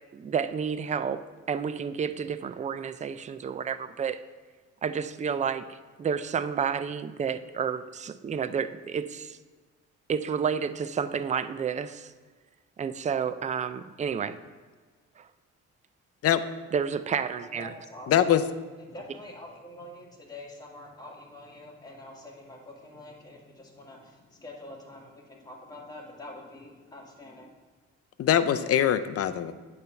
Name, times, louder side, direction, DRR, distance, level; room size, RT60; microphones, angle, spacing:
voice 1, 0.1-4.2 4.8-9.4 10.1-12.1 12.8-14.4 15.2-15.3 16.7-17.7, right 7 dB, 25° right, 12 dB, 0.3 m, -30 dB
voice 2, 17.4-18.3 18.9-27.5, left 1 dB, 15° left, -3 dB, 1.8 m, -46 dB
voice 3, 18.1-18.4 28.2-29.5, left 10 dB, 50° left, 12 dB, 0.5 m, -22 dB
9.1 x 3.3 x 5.6 m, 1.4 s
cardioid pair, 90°, 30 cm